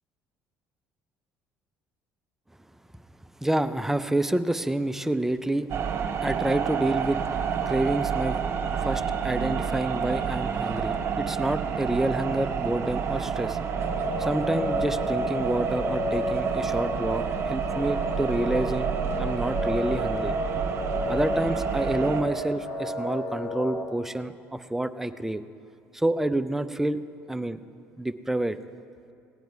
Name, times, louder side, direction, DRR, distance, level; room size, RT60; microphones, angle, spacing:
voice 1, 3.4-5.7 6.2-7.2 7.7-8.4 8.8-13.6 14.2-18.9 19.2-20.3 21.1-25.4 25.9-27.0 27.3-27.6 28.0-28.6, right 1 dB, 5° right, 11 dB, 0.5 m, -28 dB
sound 1, 5.7-22.2, right 7 dB, 55° right, 1.0 m, -29 dB
sound 2, 13.7-23.8, left 1 dB, 70° left, 1.8 m, -32 dB
17.5 x 9.2 x 4.6 m, 2.5 s
cardioid pair, 105°, 5 cm